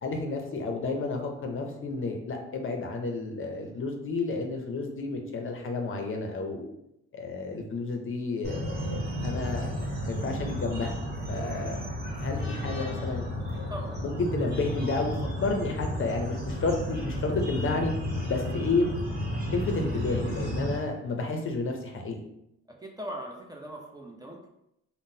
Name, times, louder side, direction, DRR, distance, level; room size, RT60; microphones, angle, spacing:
voice 1, 0.0-6.7 7.1-9.7 10.1-11.0 11.3-11.8 12.2-13.7 14.0-15.1 15.4-17.9 18.2-18.9 19.5-22.2, left 3 dB, 45° left, 3 dB, 0.6 m, -31 dB
sound 1, 8.4-20.8, equal, 35° right, 1.2 m, -32 dB
voice 2, 13.5-14.0 22.8-24.5, equal, 15° right, -1 dB, 0.6 m, -40 dB
3.7 x 2.1 x 2.6 m, 0.81 s
cardioid pair, 85°, 30 cm